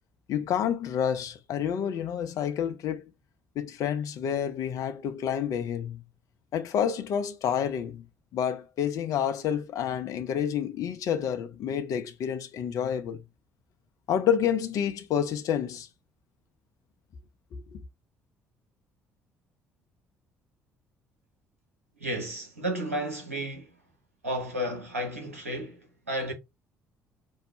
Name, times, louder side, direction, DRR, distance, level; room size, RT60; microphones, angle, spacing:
voice 1, 0.3-3.0 3.6-6.0 6.5-8.1 8.3-13.2 14.1-15.9 17.5-17.8, left 8 dB, 50° left, 0.6 m, -29 dB
voice 2, 22.0-23.7 24.2-26.3, right 1 dB, 85° right, 0.9 m, -32 dB
5.4 x 2.2 x 3.2 m
figure-of-eight pair, 50°, 7 cm